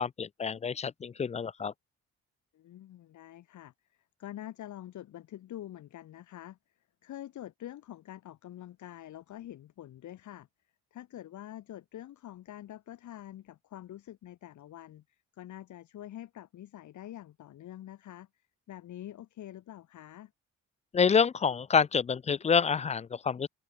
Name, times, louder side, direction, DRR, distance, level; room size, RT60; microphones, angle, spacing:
voice 1, 0.0-1.7 20.9-23.5, left 6 dB, 25° left, 0.3 m, -27 dB
voice 2, 2.5-3.7 4.2-6.6 7.0-10.5 10.9-18.3 18.7-20.3, left 12 dB, 70° left, 2.2 m, -46 dB
cardioid pair, 90°, 30 cm